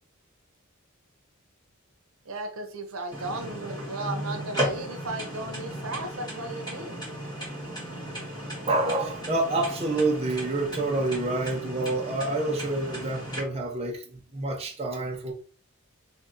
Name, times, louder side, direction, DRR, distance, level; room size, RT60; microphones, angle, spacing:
voice 1, 2.3-6.9, right 2 dB, 90° right, 0.8 m, -35 dB
sound 1, 3.1-13.4, right 1 dB, 20° left, 2.0 m, -35 dB
voice 2, 8.7-15.3, right 2 dB, 30° right, 0.8 m, -28 dB
3.2 x 2.7 x 3.7 m
head